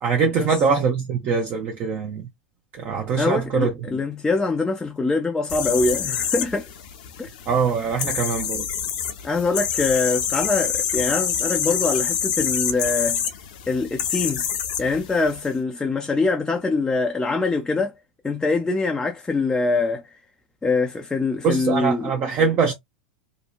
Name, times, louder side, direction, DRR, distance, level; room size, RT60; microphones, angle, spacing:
voice 1, 0.0-2.3 2.7-4.0 7.5-8.7 21.4-22.7, right 5 dB, 40° right, 0.6 m, -23 dB
voice 2, 3.2-6.7 7.2-7.3 9.2-13.2 13.7-14.5 14.8-17.9 18.2-20.0 20.6-22.1, left 3 dB, 10° left, 0.4 m, -23 dB
sound 1, 5.5-15.5, left 8 dB, 60° left, 0.6 m, -27 dB
2.7 x 2.1 x 2.4 m
figure-of-eight pair, 90°, 5 cm